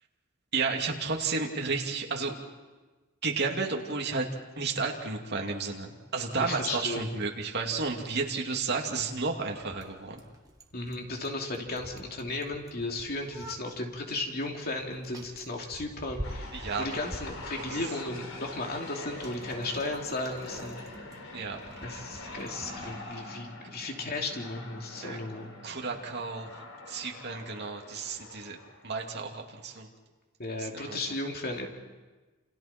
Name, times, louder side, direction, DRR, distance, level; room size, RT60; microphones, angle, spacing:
voice 1, 0.5-2.3 3.2-4.3 4.6-10.2 16.5-17.0 17.7-17.8 21.3-21.6 23.1-23.4 25.0-25.2 25.6-28.6 28.8-29.9 30.6-31.0, right 4 dB, 50° right, 0 dB, 2.7 m, -32 dB
voice 2, 6.3-7.1 10.7-20.8 21.8-25.5 30.4-31.7, left 2 dB, 45° left, 1 dB, 2.9 m, -35 dB
Bicycle, 6.6-22.9, equal, 15° right, 1.8 m, -48 dB
sound 1, 16.2-29.3, left 2 dB, 75° left, 3.8 m, -44 dB
28.5 x 28.5 x 4.5 m, 1.3 s
head